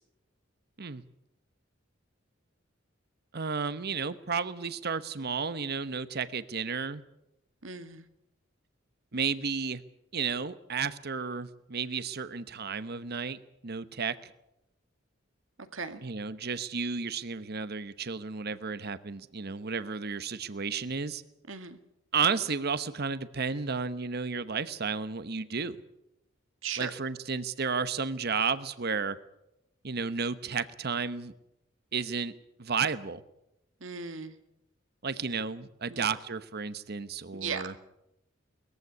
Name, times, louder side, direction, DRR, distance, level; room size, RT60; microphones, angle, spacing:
voice 1, 3.3-7.0 9.1-9.8 10.1-13.4 13.6-14.3 16.0-21.2 22.1-25.8 26.8-29.2 29.8-31.3 31.9-32.3 32.6-33.2 35.0-37.7, right 5 dB, 55° right, 1.0 m, -32 dB
voice 2, 7.6-8.1 15.7-16.0 21.5-21.8 26.6-26.9 33.8-34.3 35.9-36.1 37.3-37.6, right 5 dB, 80° right, 1.9 m, -37 dB
21.0 x 15.0 x 9.6 m
head